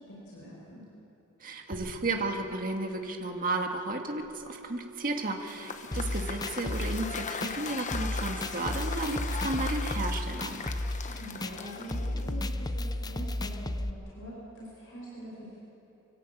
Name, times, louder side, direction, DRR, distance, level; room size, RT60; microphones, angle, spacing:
voice 1, 0.1-0.8 11.0-15.6, right 1 dB, 65° left, -5 dB, 6.0 m, -44 dB
voice 2, 1.4-10.7, right 2 dB, 40° right, 3 dB, 2.0 m, -33 dB
sound 1, 1.7-11.1, right 2 dB, 70° right, 4.3 m, -50 dB
Cheering / Applause / Crowd, 5.4-12.5, left 5 dB, 35° left, 0.9 m, -39 dB
sound 2, 5.9-13.9, left 1 dB, 20° left, 0.6 m, -34 dB
24.0 x 16.5 x 8.7 m, 3.0 s
head